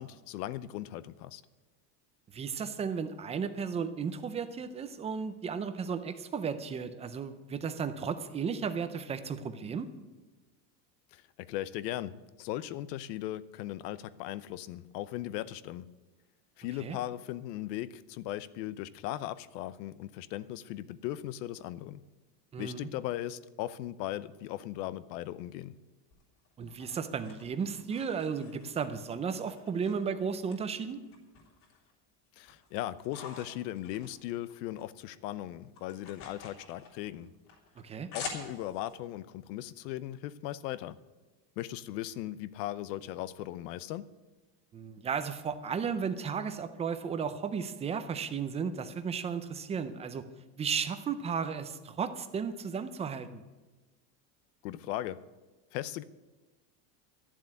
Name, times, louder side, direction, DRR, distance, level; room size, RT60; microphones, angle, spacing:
voice 1, 0.0-1.4 11.1-15.9 16.6-22.0 22.6-25.7 32.4-37.3 38.1-41.0 41.6-44.0 54.6-55.2 55.7-56.0, left 14 dB, 90° left, 16 dB, 0.8 m, -38 dB
voice 2, 2.3-9.9 16.8-17.0 22.5-22.9 26.6-31.0 37.8-38.1 44.7-50.2 50.6-53.4, right 6 dB, 15° right, 10 dB, 0.4 m, -34 dB
sound 1, 26.1-29.0 29.5-30.6 30.9-31.9 32.3-34.9 35.1-38.9, left 5 dB, 45° left, 3.5 m, -47 dB
11.5 x 7.5 x 9.8 m, 1.2 s
cardioid pair, 155°, 48 cm